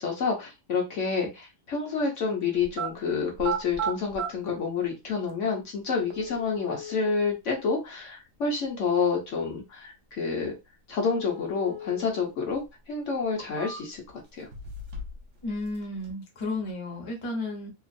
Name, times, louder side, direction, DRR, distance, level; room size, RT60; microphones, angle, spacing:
voice 1, 0.0-10.6 10.9-12.6 12.9-14.0 14.4-14.5, left 5 dB, 65° left, 1.2 m, -28 dB
sound 1, 2.6-2.9 3.3-4.3 5.3-5.4 6.1-7.1 11.1-12.1 12.5-12.6 13.2-14.1 14.5-15.2 15.5-16.1, right 4 dB, 65° right, 1.1 m, -35 dB
voice 2, 15.4-17.7, left 2 dB, 30° left, 0.7 m, -33 dB
3.0 x 2.4 x 2.5 m
omnidirectional pair, 1.4 m